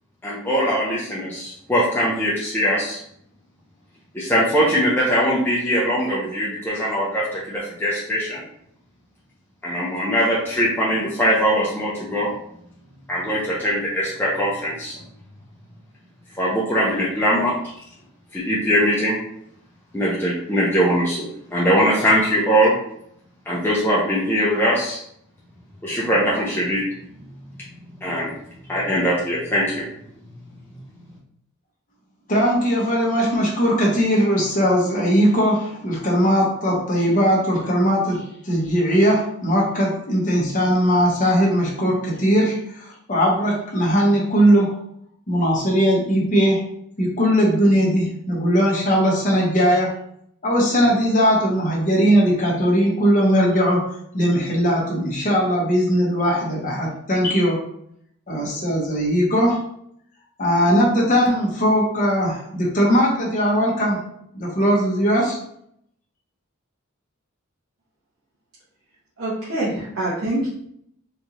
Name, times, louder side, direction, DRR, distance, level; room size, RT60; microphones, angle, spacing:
voice 1, 0.2-3.0 4.1-8.4 9.6-12.3 13.1-14.9 16.4-17.5 18.3-19.2 19.9-22.7 23.5-25.0 25.8-26.8 28.0-28.3 28.7-29.8, equal, 10° left, -6 dB, 0.6 m, -21 dB
voice 2, 32.3-44.7 45.3-46.6 47.0-49.9 50.4-53.8 54.1-57.6 58.3-59.6 60.4-64.0 64.3-65.4, equal, 40° left, -3 dB, 1.2 m, -19 dB
voice 3, 69.2-70.5, right 1 dB, 90° right, -9 dB, 1.2 m, -25 dB
4.4 x 2.6 x 3.0 m, 0.72 s
head